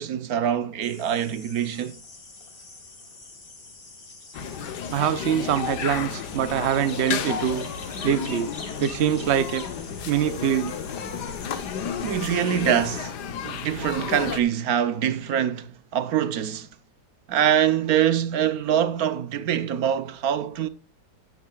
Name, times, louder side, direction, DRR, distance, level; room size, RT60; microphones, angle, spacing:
voice 1, 0.0-2.0 12.0-13.2 13.4-16.7 17.3-20.7, right 9 dB, 60° right, 1.1 m, -24 dB
sound 1, 0.8-13.0, left 3 dB, 30° left, 1.7 m, -45 dB
sound 2, 4.3-14.4, left 7 dB, 60° left, 1.5 m, -32 dB
voice 2, 4.9-7.7 8.0-8.5 8.8-9.6 10.1-10.7, right 10 dB, 90° right, 0.5 m, -24 dB
12.5 x 9.2 x 2.3 m
omnidirectional pair, 2.2 m